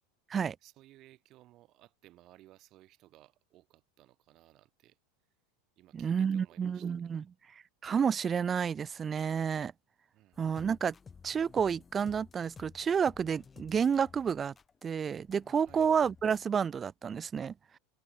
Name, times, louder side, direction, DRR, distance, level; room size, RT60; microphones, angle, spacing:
voice 1, 0.6-5.0 5.8-7.2 10.1-10.4 15.6-15.9, right 16 dB, 45° right, 7.0 m, -59 dB
voice 2, 5.9-7.2 7.8-9.7 10.4-10.9 11.2-14.5 14.8-17.8, right 7 dB, 25° right, 0.6 m, -30 dB
sound 1, 10.3-16.5, left 5 dB, 20° left, 6.2 m, -55 dB
hypercardioid pair, 110°, 0 cm